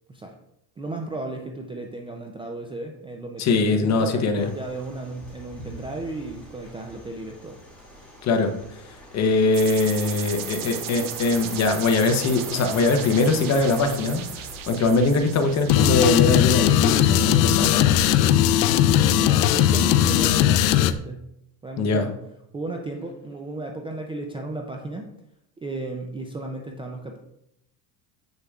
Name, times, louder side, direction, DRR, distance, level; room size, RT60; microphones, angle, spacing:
voice 1, 0.8-7.6 19.1-21.3 21.6-22.2 22.5-25.1 25.6-27.2, right 2 dB, 15° right, 2 dB, 0.3 m, -34 dB
voice 2, 3.4-4.5 8.2-8.5 9.1-18.0 21.8-22.1, left 3 dB, 35° left, 6 dB, 0.8 m, -22 dB
sound 1, 4.4-19.6, equal, 5° left, 2.2 m, -42 dB
sound 2, 9.5-17.3, right 11 dB, 50° right, 0.7 m, -37 dB
sound 3, 15.7-20.9, left 11 dB, 70° left, 0.5 m, -18 dB
7.7 x 6.7 x 2.4 m, 0.80 s
cardioid pair, 130°, 45 cm